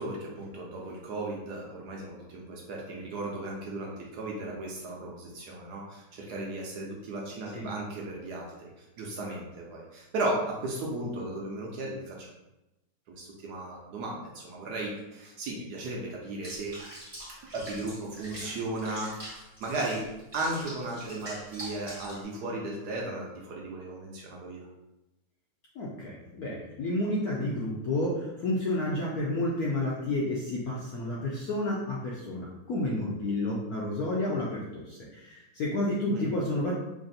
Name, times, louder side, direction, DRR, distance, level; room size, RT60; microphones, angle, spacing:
voice 1, 0.0-8.7 9.0-12.3 13.1-16.9 17.5-20.0 20.3-24.7 36.1-36.3, right 2 dB, 70° right, -2 dB, 1.0 m, -35 dB
Water / Bathtub (filling or washing), 16.4-22.2, right 1 dB, 20° right, 0.7 m, -44 dB
voice 2, 25.8-36.7, left 1 dB, 70° left, -4 dB, 0.8 m, -30 dB
3.3 x 2.5 x 3.9 m, 0.98 s
omnidirectional pair, 2.1 m